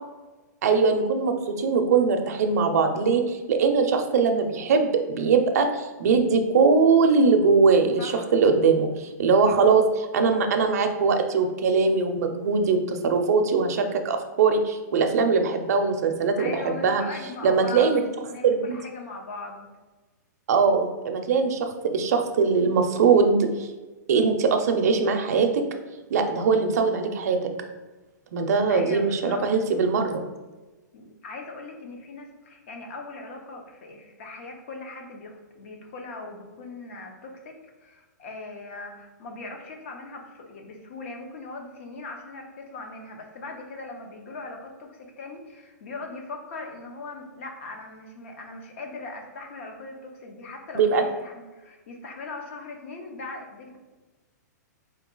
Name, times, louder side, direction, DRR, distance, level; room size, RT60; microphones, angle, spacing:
voice 1, 0.6-16.5 16.8-17.0 17.4-18.0 18.4-18.8 20.5-23.7 24.1-25.6 26.1-27.4 28.3-30.2 50.7-51.0, right 5 dB, 55° right, 5 dB, 0.5 m, -21 dB
voice 2, 8.0-8.3 16.4-19.7 28.7-29.4 30.9-37.5 37.8-53.8, left 3 dB, 45° left, 3 dB, 0.7 m, -39 dB
3.8 x 2.8 x 3.8 m, 1.2 s
hypercardioid pair, 170°, 10 cm